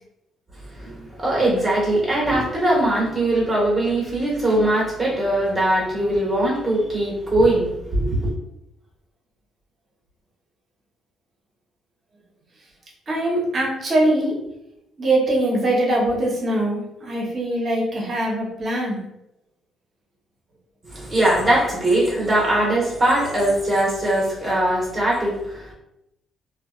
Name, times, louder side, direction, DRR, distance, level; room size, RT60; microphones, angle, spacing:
voice 1, 0.7-8.3 20.8-25.7, right 1 dB, 20° right, -5 dB, 1.3 m, -21 dB
voice 2, 13.1-14.3 15.0-19.0, right 1 dB, 40° right, -2 dB, 1.0 m, -22 dB
2.5 x 2.3 x 2.4 m, 0.85 s
cardioid pair, 90°, 0 cm